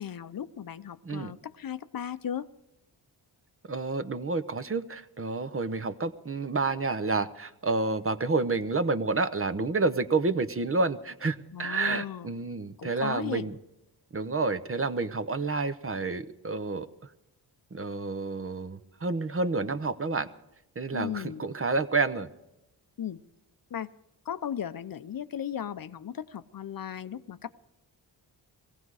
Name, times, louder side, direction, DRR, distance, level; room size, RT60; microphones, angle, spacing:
voice 1, 0.0-2.5 11.5-12.3 12.8-13.5 20.9-21.4 23.0-23.2 23.7-23.9 24.2-27.5, left 9 dB, 50° left, 13 dB, 0.7 m, -36 dB
voice 2, 1.0-1.3 3.7-13.6 14.1-16.9 17.7-20.3 20.7-22.3, right 3 dB, 30° right, 12 dB, 0.9 m, -29 dB
18.0 x 15.5 x 4.8 m, 0.89 s
cardioid pair, 60°, 43 cm